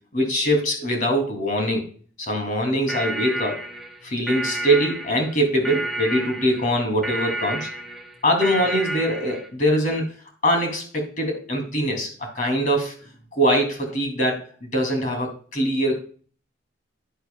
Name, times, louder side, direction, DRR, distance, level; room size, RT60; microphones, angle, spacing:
voice 1, 0.1-1.8 2.2-3.6 4.0-7.7 8.2-10.1 10.4-12.9 13.4-16.0, equal, 45° left, 3 dB, 2.7 m, -23 dB
sound 1, 2.9-9.5, right 1 dB, ahead, 1.3 m, -31 dB
10.5 x 10.0 x 2.3 m, 0.43 s
head